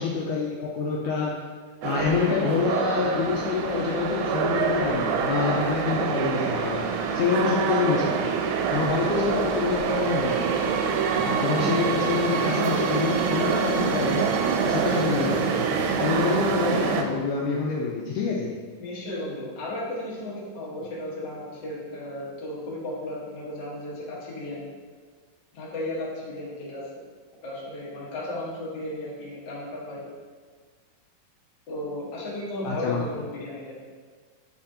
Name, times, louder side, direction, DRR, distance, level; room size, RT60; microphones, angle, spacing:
voice 1, 0.0-1.4 1.8-8.3 8.7-10.6 11.2-14.3 14.6-15.7 16.0-18.6 32.6-33.0, left 5 dB, 80° left, -3 dB, 1.9 m, -27 dB
sound 1, 1.8-17.0, right 6 dB, 90° right, 2.3 m, -25 dB
voice 2, 18.8-24.7 25.5-26.9 27.4-30.1 31.7-33.8, left 1 dB, 55° left, -6 dB, 1.2 m, -34 dB
8.6 x 4.3 x 2.8 m, 1.6 s
omnidirectional pair, 4.1 m